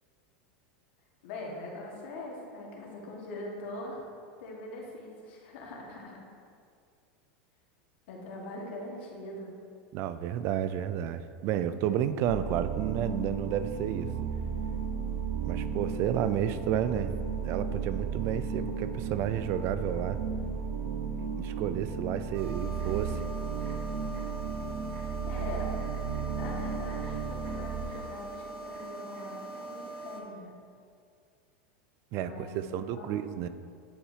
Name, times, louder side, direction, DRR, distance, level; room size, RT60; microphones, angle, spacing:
voice 1, 1.2-4.0 4.4-6.2 8.1-9.6 25.2-25.8 26.3-30.5 32.2-33.2, left 2 dB, 70° left, -2 dB, 1.6 m, -42 dB
voice 2, 9.9-14.1 15.4-17.2 17.4-20.2 21.4-23.2 32.1-33.5, right 10 dB, 45° right, 12 dB, 0.3 m, -31 dB
sound 1, 12.3-27.8, right 6 dB, 85° right, 0.7 m, -34 dB
sound 2, 22.3-30.2, right 2 dB, 70° right, 1.2 m, -42 dB
10.0 x 4.8 x 2.8 m, 2.2 s
supercardioid pair, 140°, 6 cm